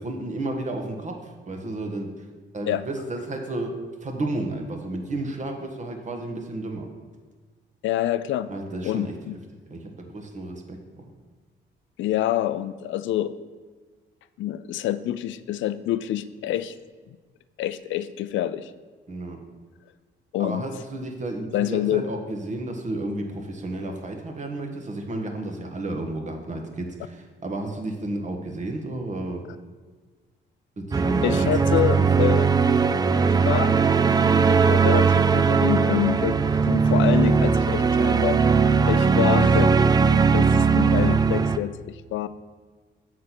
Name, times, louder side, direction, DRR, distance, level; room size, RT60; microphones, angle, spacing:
voice 1, 0.0-2.3 2.5-6.9 8.5-9.1 9.7-11.1 19.1-19.4 20.4-29.5 30.8-32.3, right 2 dB, 40° right, 3 dB, 1.2 m, -32 dB
voice 2, 7.8-8.5 8.8-9.4 12.0-13.3 14.4-16.7 17.6-18.7 20.3-20.6 21.5-22.0 31.2-32.8 33.5-33.8 34.5-38.4 38.9-39.9 40.3-42.3, left 12 dB, 75° left, 14 dB, 0.4 m, -27 dB
sound 1, 30.9-41.6, right 5 dB, 20° right, 0.3 m, -19 dB
7.4 x 4.2 x 6.1 m, 1.4 s
cardioid pair, 90°, 20 cm